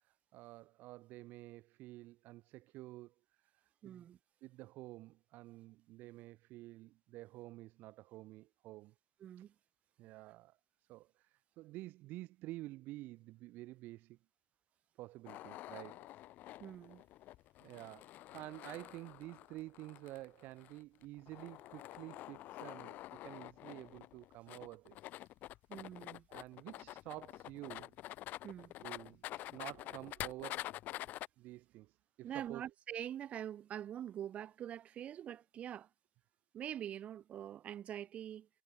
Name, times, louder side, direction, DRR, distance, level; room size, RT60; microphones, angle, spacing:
voice 1, 0.3-4.0 4.4-8.9 10.0-10.6 10.9-14.2 15.0-16.2 17.6-25.1 26.3-28.0 28.8-29.2 29.5-31.1 31.4-32.6, right 18 dB, 50° right, 0.6 m, -50 dB
voice 2, 3.8-4.2 9.2-9.5 16.6-17.0 25.7-26.3 28.4-28.8 32.2-35.9 36.5-38.5, right 10 dB, 35° right, 2.9 m, -45 dB
sound 1, 15.2-31.3, left 15 dB, 50° left, 2.4 m, -48 dB
cardioid pair, 160°, 4 cm